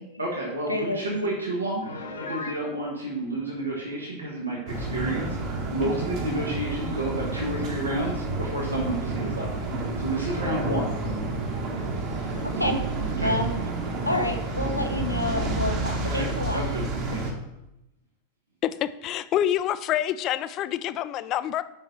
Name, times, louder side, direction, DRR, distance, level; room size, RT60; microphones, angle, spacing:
voice 1, 0.2-11.0 13.1-13.3 16.0-17.3, right 1 dB, 80° right, -3 dB, 1.3 m, -31 dB
voice 2, 0.7-1.0 12.4-12.8 13.2-13.5 14.0-16.6, left 1 dB, 90° left, 3 dB, 0.9 m, -28 dB
Piano, 1.8-2.6, left 3 dB, 70° left, 1.2 m, -36 dB
sound 1, 4.7-17.3, right 2 dB, 40° right, 1.4 m, -30 dB
voice 3, 18.6-21.6, left 11 dB, 35° left, 14 dB, 0.4 m, -27 dB
5.5 x 5.3 x 5.8 m, 0.88 s
figure-of-eight pair, 90°, 0 cm